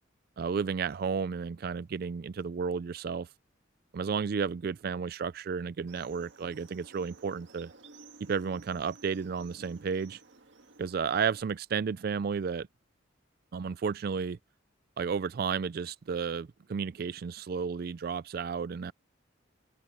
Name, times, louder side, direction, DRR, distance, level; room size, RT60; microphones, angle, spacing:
voice 1, 0.4-3.3 3.9-7.7 8.3-10.2 10.8-12.7 13.5-14.4 15.0-18.9, right 6 dB, 50° right, 0.3 m, -32 dB
sound 1, 5.9-11.4, right 3 dB, 65° right, 1.8 m, -54 dB
open air
head